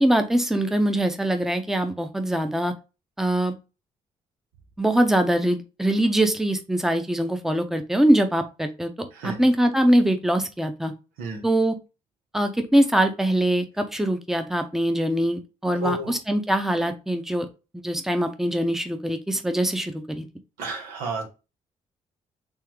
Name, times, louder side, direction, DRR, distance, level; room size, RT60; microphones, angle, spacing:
voice 1, 0.0-2.7 3.2-3.6 4.8-10.9 11.4-11.8 12.3-17.5 17.7-20.2, right 1 dB, 5° right, 6 dB, 0.7 m, -23 dB
voice 2, 15.8-16.1 20.6-21.2, right 2 dB, 85° right, 2 dB, 1.1 m, -31 dB
3.6 x 3.1 x 3.1 m, 0.29 s
hypercardioid pair, 50°, 15 cm